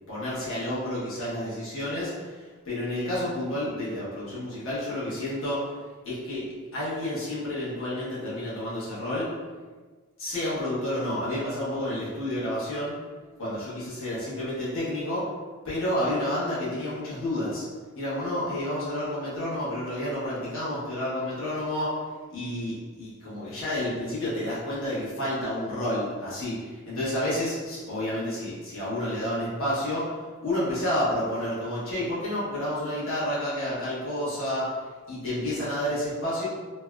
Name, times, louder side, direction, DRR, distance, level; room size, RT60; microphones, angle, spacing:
voice 1, 0.1-5.7 6.0-9.3 10.2-12.9 13.4-15.3 15.6-17.6 17.9-22.0 22.3-34.7 35.1-36.4, left 1 dB, 65° left, -9 dB, 1.1 m, -30 dB
3.3 x 2.2 x 2.3 m, 1.4 s
head